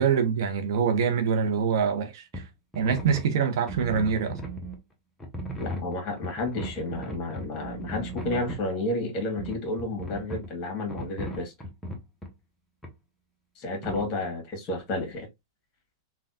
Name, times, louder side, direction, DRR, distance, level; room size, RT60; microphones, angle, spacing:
voice 1, 0.0-2.5 2.7-4.4, right 6 dB, 65° right, 0.7 m, -25 dB
sound 1, 2.3-2.5 2.7-4.8 5.2-8.7 9.4-10.5 10.9-12.3 12.8-12.9 13.8-14.1, right 1 dB, 10° left, 0.7 m, -37 dB
voice 2, 5.6-11.5 13.6-15.3, left 2 dB, 35° left, 1.4 m, -31 dB
3.4 x 2.2 x 2.6 m
hypercardioid pair, 120°, 2 cm